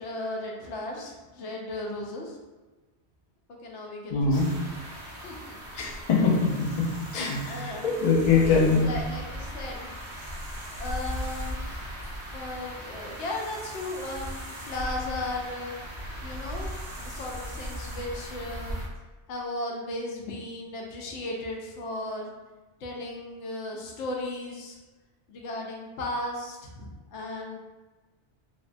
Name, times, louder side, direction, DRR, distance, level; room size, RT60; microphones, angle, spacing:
voice 1, 0.0-2.4 3.6-4.8 5.2-5.6 7.4-7.9 8.3-9.9 10.8-11.7 12.3-15.7 16.2-18.8 19.3-22.3 22.8-24.8 25.3-27.6, left 2 dB, 85° left, 0 dB, 0.9 m, -36 dB
voice 2, 4.1-4.5 5.7-8.9, left 4 dB, 50° left, -2 dB, 0.4 m, -23 dB
sound 1, 4.3-18.9, equal, 75° right, 1.1 m, -38 dB
3.3 x 2.1 x 2.4 m, 1.2 s
omnidirectional pair, 1.1 m